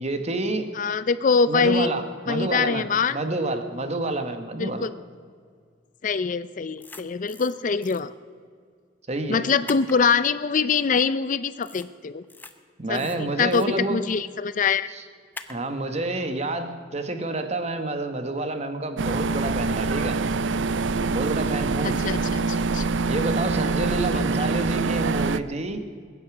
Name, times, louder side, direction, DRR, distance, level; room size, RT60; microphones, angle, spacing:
voice 1, 0.0-0.7 1.5-4.9 9.1-9.4 12.8-14.0 14.9-15.0 15.5-20.2 21.1-22.0 23.1-25.8, right 2 dB, 35° right, 8 dB, 1.3 m, -28 dB
voice 2, 0.8-1.9 2.3-3.2 4.6-4.9 6.0-8.1 9.3-12.2 12.9-14.9 21.8-22.8 24.1-24.3, left 5 dB, 45° left, 15 dB, 0.4 m, -24 dB
sound 1, 6.8-7.5 7.8-8.0 9.7-10.0 11.6-11.9 12.2-12.5 12.9-13.7 15.3-15.6, left 2 dB, 10° left, 0.8 m, -41 dB
sound 2, 19.0-25.4, right 3 dB, 85° right, 0.5 m, -25 dB
21.5 x 9.6 x 6.0 m, 2.1 s
head